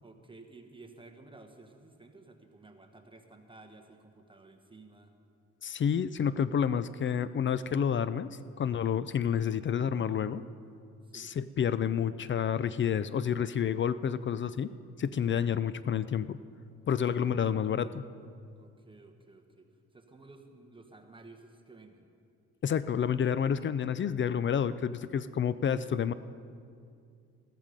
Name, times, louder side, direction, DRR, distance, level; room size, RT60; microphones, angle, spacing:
voice 1, 0.0-5.1 11.0-11.3 16.8-17.7 18.6-19.7 19.9-22.1, right 3 dB, 15° right, 5 dB, 1.3 m, -54 dB
voice 2, 5.6-8.3 8.6-10.4 11.1-14.7 15.0-16.4 16.9-18.0 22.6-26.1, left 8 dB, 40° left, 15 dB, 0.4 m, -29 dB
14.5 x 13.5 x 5.2 m, 2.4 s
cardioid pair, 90°, 30 cm